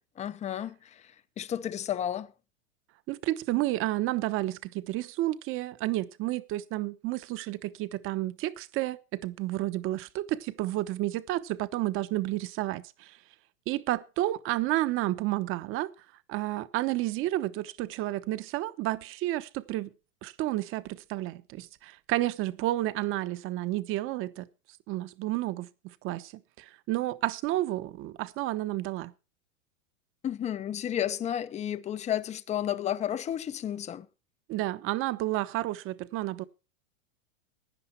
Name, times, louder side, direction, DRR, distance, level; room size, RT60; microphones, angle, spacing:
voice 1, 0.2-0.7 1.4-2.3 30.2-34.1, left 10 dB, 15° left, 0.7 m, -32 dB
voice 2, 3.1-13.2 13.7-15.9 16.3-19.9 20.2-24.5 24.9-26.3 26.6-29.1 34.5-36.4, right 16 dB, 30° right, 1.0 m, -31 dB
16.5 x 10.5 x 4.5 m
hypercardioid pair, 130°, 40 cm